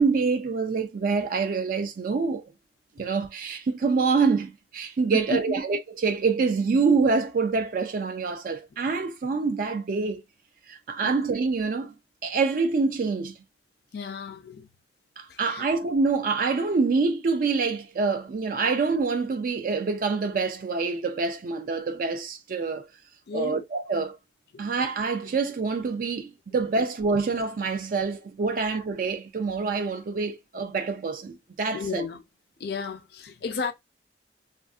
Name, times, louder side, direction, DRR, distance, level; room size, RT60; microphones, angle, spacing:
voice 1, 0.0-2.4 3.0-10.2 10.7-11.9 12.2-13.3 15.2-22.9 23.3-24.2 24.6-32.0, right 4 dB, 50° right, 0.3 m, -26 dB
voice 2, 5.1-5.6 11.0-11.1 13.9-14.7 15.3-15.7 23.3-23.6 24.5-24.7 31.7-32.2 32.6-33.7, left 4 dB, 60° left, 0.4 m, -33 dB
3.3 x 2.4 x 2.3 m
head